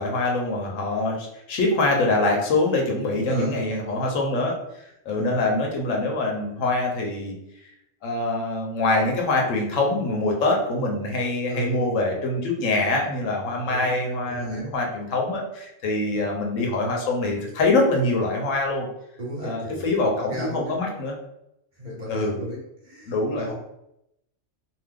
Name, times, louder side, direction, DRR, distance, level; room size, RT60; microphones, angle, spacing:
voice 1, 0.0-4.6 5.1-7.4 8.0-18.9 19.4-21.1 22.1-22.4 23.1-23.5, left 2 dB, 85° left, 0 dB, 1.1 m, -24 dB
voice 2, 3.2-4.1 5.1-5.4 11.5-11.8 13.7-13.9 14.2-14.7 16.1-16.3 19.2-20.7 21.8-23.5, equal, 40° right, -5 dB, 0.9 m, -35 dB
2.7 x 2.0 x 3.5 m, 0.82 s
omnidirectional pair, 1.3 m